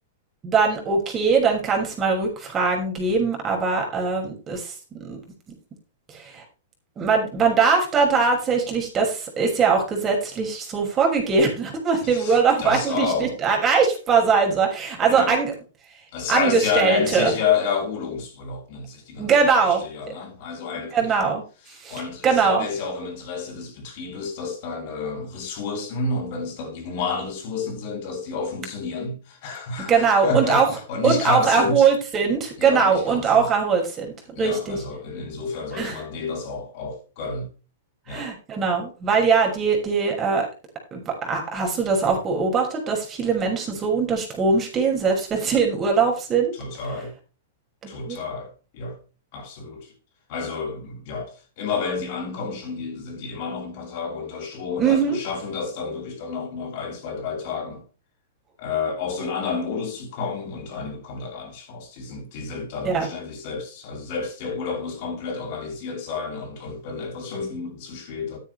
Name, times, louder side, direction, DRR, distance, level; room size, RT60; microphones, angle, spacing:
voice 1, 0.4-4.7 5.0-5.2 6.1-6.4 7.0-15.5 16.3-17.3 19.2-19.8 20.9-21.4 21.8-22.7 29.9-30.7 31.0-34.8 35.7-36.0 38.1-40.5 40.9-46.5 47.8-48.2 54.8-55.2 62.8-63.1, right 5 dB, 25° right, 6.3 m, -21 dB
voice 2, 12.0-13.4 15.1-15.4 16.1-21.3 21.9-30.6 30.9-31.9 32.6-33.5 34.3-37.5 38.1-38.3 46.5-47.1 47.9-49.0 49.3-49.9 50.3-57.9 58.6-68.4, left 5 dB, 50° left, 8.0 m, -30 dB
13.5 x 9.9 x 3.4 m
figure-of-eight pair, 105°, 0 cm